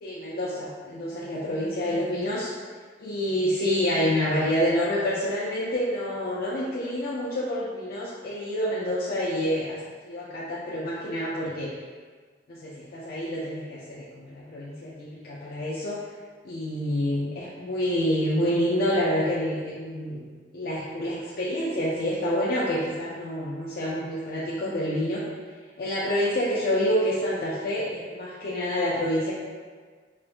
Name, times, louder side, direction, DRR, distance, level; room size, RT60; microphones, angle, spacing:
voice 1, 0.0-2.5 3.0-9.8 10.0-11.7 12.5-16.0 16.4-20.3 20.5-25.2 25.8-29.3, equal, 55° left, -7 dB, 0.5 m, -27 dB
4.4 x 2.2 x 2.4 m, 1.6 s
head